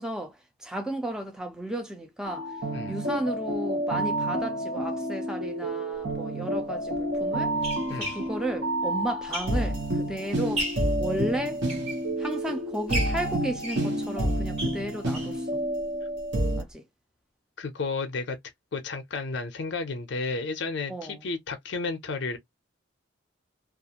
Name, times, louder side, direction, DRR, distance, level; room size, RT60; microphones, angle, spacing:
voice 1, 0.0-2.6 2.9-7.5 7.9-10.7 11.0-11.6 12.2-15.6 16.6-16.8 20.9-21.2, right 1 dB, 5° right, 0.4 m, -34 dB
sound 1, 2.3-16.6, right 1 dB, 55° right, 0.8 m, -29 dB
sound 2, 6.0-6.1 6.9-9.9 10.3-11.0 11.5-12.5 12.9-15.4 15.8-15.9 16.2-16.3 16.6-16.7, right 1 dB, 30° right, 1.3 m, -36 dB
voice 2, 17.6-18.4 18.7-22.4, left 3 dB, 60° left, 0.5 m, -32 dB
2.4 x 2.4 x 2.8 m
head